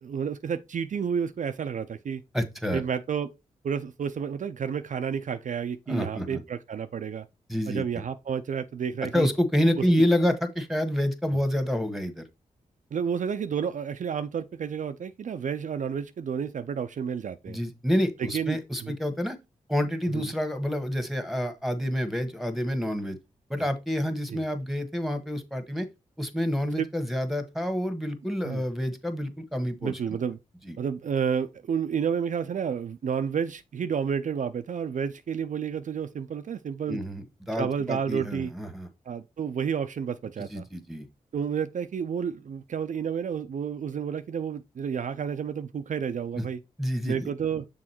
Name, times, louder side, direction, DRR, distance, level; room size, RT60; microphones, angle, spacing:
voice 1, 0.0-2.2 2.7-3.3 3.6-7.3 7.7-9.3 12.9-17.6 18.2-18.9 20.1-20.3 23.6-23.7 24.3-24.4 26.8-26.9 28.4-28.6 29.8-30.4 30.8-37.0 37.6-38.5 39.1-40.6 41.3-46.6 47.1-47.7, right 7 dB, 65° right, 0.5 m, -30 dB
voice 2, 2.3-2.8 5.9-6.4 7.5-7.8 9.1-12.2 17.5-19.4 19.7-23.2 23.5-25.9 26.2-30.0 30.6-30.8 36.9-38.9 40.5-41.1 46.4-46.5 46.8-47.3, equal, ahead, 1.4 m, -28 dB
6.4 x 3.7 x 4.3 m
cardioid pair, 50°, 14 cm